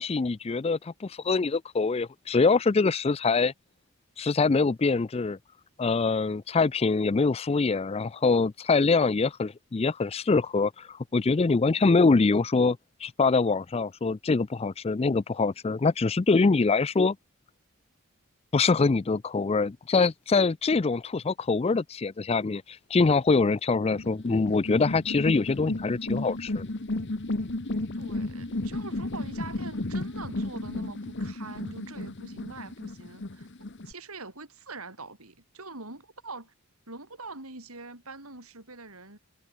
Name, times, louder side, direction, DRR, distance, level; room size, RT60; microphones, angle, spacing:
voice 1, 0.0-3.5 4.2-5.4 5.8-17.2 18.5-26.7, left 4 dB, 25° left, 0.4 m, -24 dB
sound 1, 23.9-33.9, left 2 dB, 55° left, 1.2 m, -33 dB
voice 2, 27.9-33.5 33.8-36.5 36.9-39.2, right 3 dB, 80° right, 6.9 m, -43 dB
head